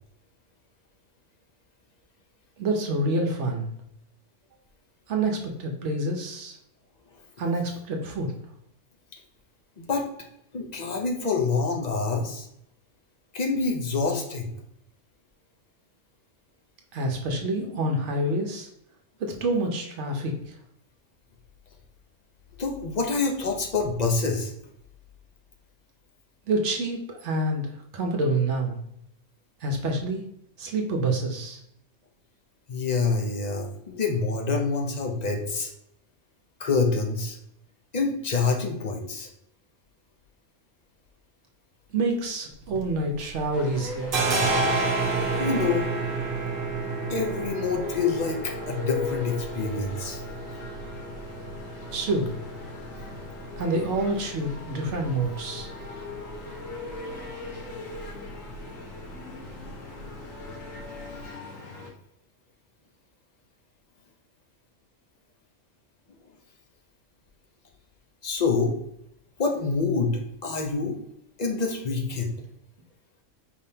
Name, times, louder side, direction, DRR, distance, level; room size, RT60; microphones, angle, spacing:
voice 1, 2.6-3.7 5.1-6.6 7.4-8.3 16.9-18.7 19.2-20.3 26.5-28.8 29.6-30.2 30.6-31.6 41.9-44.2 51.9-52.3 53.6-55.7, right 2 dB, 70° right, 2 dB, 1.0 m, -27 dB
voice 2, 10.5-12.5 13.3-14.5 22.6-24.5 32.7-35.7 36.6-37.4 37.9-39.3 45.4-45.9 47.1-50.2 68.2-68.8 69.4-71.0 71.4-72.3, left 4 dB, 40° left, 3 dB, 0.7 m, -26 dB
sound 1, 42.5-43.5 43.7-61.2, right 3 dB, 50° right, 0.9 m, -32 dB
sound 2, 43.5-61.9, left 3 dB, 90° left, 1.5 m, -40 dB
4.8 x 3.5 x 2.8 m, 0.76 s
omnidirectional pair, 1.3 m